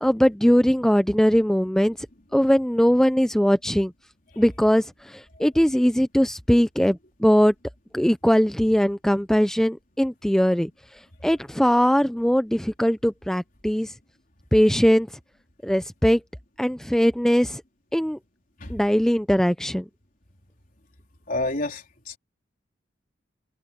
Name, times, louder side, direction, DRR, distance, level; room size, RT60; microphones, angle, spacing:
voice 1, 0.0-2.0 2.3-3.9 4.4-7.5 7.9-10.7 11.2-13.9 14.5-15.1 15.6-16.2 16.6-17.6 17.9-18.2 18.7-19.8, equal, 5° left, 0.5 m, -20 dB
voice 2, 21.3-22.2, left 2 dB, 50° left, 4.0 m, -30 dB
head